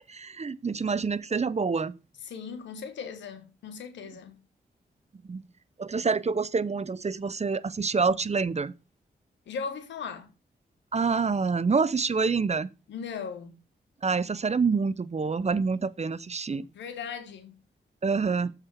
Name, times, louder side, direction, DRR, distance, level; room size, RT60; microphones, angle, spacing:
voice 1, 0.1-1.9 5.2-5.4 5.8-8.7 10.9-12.7 14.0-16.7 18.0-18.5, right 4 dB, 35° right, 0.7 m, -27 dB
voice 2, 2.2-4.4 9.5-10.3 12.9-13.6 16.7-17.6, left 6 dB, 90° left, 1.3 m, -38 dB
7.5 x 4.9 x 6.3 m
supercardioid pair, 45°, 18 cm